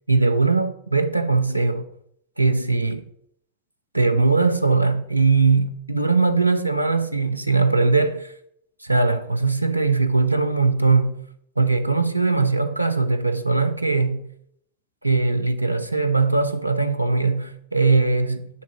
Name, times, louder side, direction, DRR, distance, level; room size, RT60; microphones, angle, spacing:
voice 1, 0.1-1.9 2.4-3.0 3.9-8.3 8.8-11.2 11.6-14.3 15.0-18.5, right 3 dB, 85° right, 0.5 m, -20 dB
8.5 x 3.5 x 5.7 m
figure-of-eight pair, 90°, 0 cm